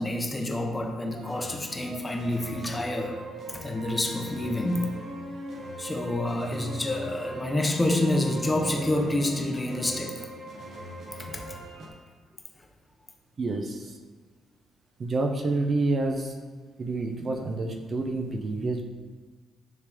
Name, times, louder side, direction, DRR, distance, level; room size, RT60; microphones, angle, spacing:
voice 1, 0.0-3.2 3.5-4.9 5.8-10.3 11.2-11.4, left 1 dB, 15° left, 2 dB, 0.9 m, -28 dB
sound 1, 1.1-11.9, right 1 dB, 55° right, 1.0 m, -40 dB
voice 2, 13.4-14.0 15.0-16.4 16.8-18.8, right 2 dB, 40° right, 3 dB, 0.7 m, -28 dB
9.5 x 3.4 x 3.6 m, 1.5 s
cardioid pair, 90°, 0 cm